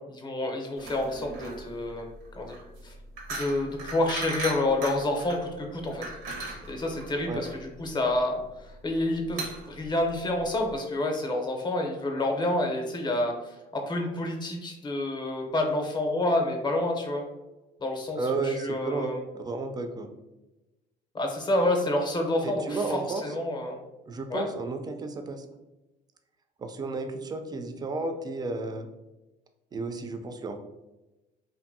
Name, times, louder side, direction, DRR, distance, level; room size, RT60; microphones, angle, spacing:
voice 1, 0.1-2.1 2.3-2.6 2.8-2.9 3.3-6.0 6.7-17.2 17.8-19.2 21.1-23.8 24.3-24.5, left 1 dB, 25° left, 2 dB, 0.6 m, -28 dB
sound 1, 0.8-10.8, right 3 dB, 80° right, 0.6 m, -39 dB
voice 2, 18.2-20.1 22.4-23.2 24.1-25.4 26.6-28.9 29.7-30.6, right 3 dB, 25° right, 6 dB, 0.3 m, -32 dB
2.6 x 2.6 x 2.6 m, 1.0 s
cardioid pair, 110°, 17 cm